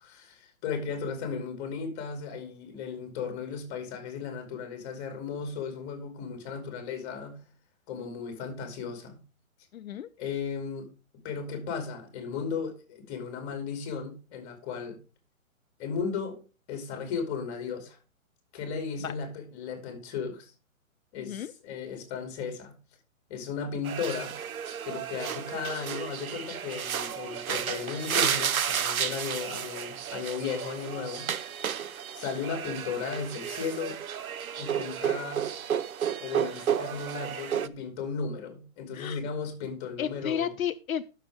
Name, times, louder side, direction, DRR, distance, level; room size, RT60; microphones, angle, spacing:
voice 1, 0.0-7.4 7.9-9.2 10.2-10.9 11.2-15.0 15.8-16.4 16.7-18.0 18.5-20.5 21.1-22.7 23.3-24.3 24.8-31.3 32.1-34.0 34.6-35.5 36.2-40.5, left 6 dB, 30° left, 3.1 m, -35 dB
voice 2, 9.7-10.1 19.0-19.1 21.2-21.5 38.9-39.2 40.0-41.1, left 9 dB, 80° left, 0.7 m, -33 dB
sound 1, 23.8-37.7, right 8 dB, 90° right, 0.8 m, -32 dB
10.5 x 6.8 x 4.9 m
hypercardioid pair, 150°, 41 cm